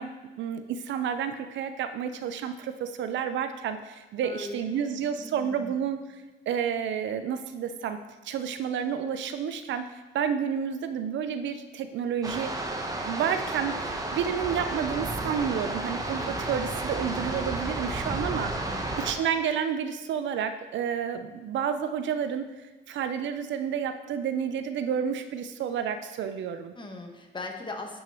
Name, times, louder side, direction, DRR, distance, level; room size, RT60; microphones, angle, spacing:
voice 1, 0.0-12.5 13.1-18.6 19.0-22.4 22.9-26.7, right 8 dB, 70° right, 9 dB, 0.5 m, -30 dB
voice 2, 4.2-5.8 18.6-19.1 26.7-28.0, left 2 dB, 25° left, 3 dB, 1.1 m, -40 dB
sound 1, 12.2-19.1, right 2 dB, 15° right, 0.8 m, -32 dB
11.0 x 4.6 x 3.0 m, 1.2 s
cardioid pair, 90°, 20 cm